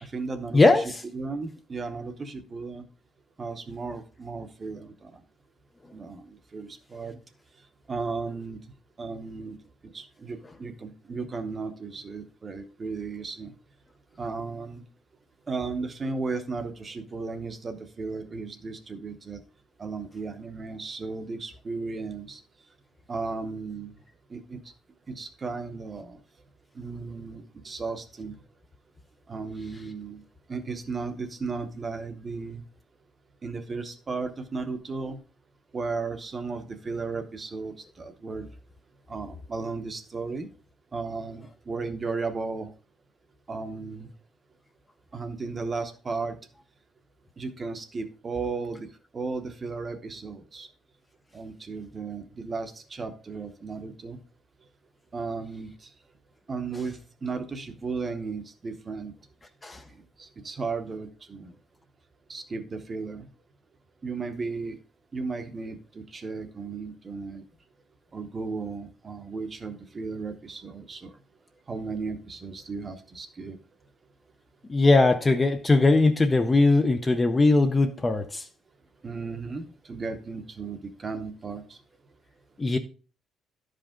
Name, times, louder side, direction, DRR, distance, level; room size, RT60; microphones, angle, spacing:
voice 1, 0.0-0.8 1.1-2.9 3.4-5.2 5.9-7.2 7.9-8.6 9.0-9.6 9.9-13.5 14.2-14.8 15.5-19.4 19.8-22.4 23.1-23.9 24.3-24.6 25.1-26.2 26.7-28.4 29.3-30.2 30.5-32.6 33.4-35.2 35.7-38.5 39.1-40.5 40.9-42.7 43.5-44.1 45.1-46.4 47.4-48.9 49.1-50.7 51.3-54.2 55.1-55.9 56.5-59.1 60.2-61.5 62.3-63.3 64.0-64.8 65.1-67.4 68.1-71.1 71.7-73.6 79.0-81.8, right 4 dB, 25° right, 0.8 m, -35 dB
voice 2, 0.5-1.0 59.6-59.8 74.7-78.4 82.6-82.8, left 3 dB, 15° left, 0.5 m, -20 dB
12.0 x 5.1 x 3.6 m
cardioid pair, 175°, 0 cm